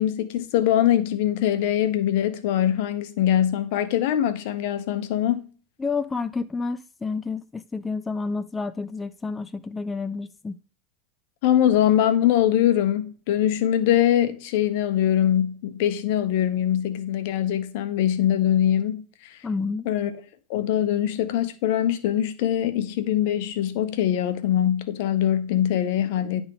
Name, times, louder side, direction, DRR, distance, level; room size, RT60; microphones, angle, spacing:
voice 1, 0.0-5.5 11.4-19.4 19.8-20.1 20.5-26.4, left 11 dB, 70° left, 0.9 m, -22 dB
voice 2, 5.8-10.6 19.4-19.9, left 4 dB, 15° left, 0.3 m, -29 dB
10.5 x 3.6 x 3.6 m
hypercardioid pair, 110°, 0 cm